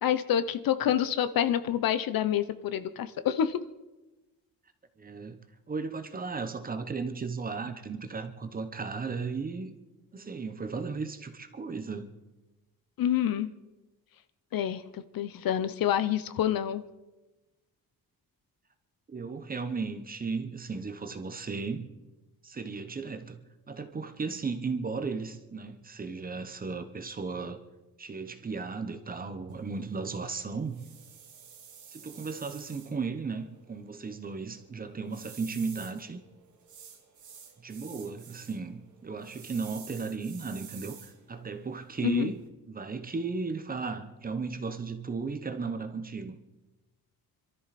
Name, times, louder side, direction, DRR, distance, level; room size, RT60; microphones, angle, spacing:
voice 1, 0.0-3.6 13.0-13.5 14.5-16.8 42.0-42.3, left 10 dB, 65° left, 0.8 m, -27 dB
voice 2, 5.0-5.4 5.7-9.7 10.1-12.1 19.1-21.9 22.4-23.4 23.7-27.6 28.0-30.8 31.9-36.2 37.6-42.4 42.7-46.4, right 4 dB, 25° right, 0.9 m, -35 dB
sound 1, 29.5-42.5, right 7 dB, 50° right, 1.9 m, -52 dB
26.0 x 13.0 x 4.2 m
wide cardioid pair, 180°, 38 cm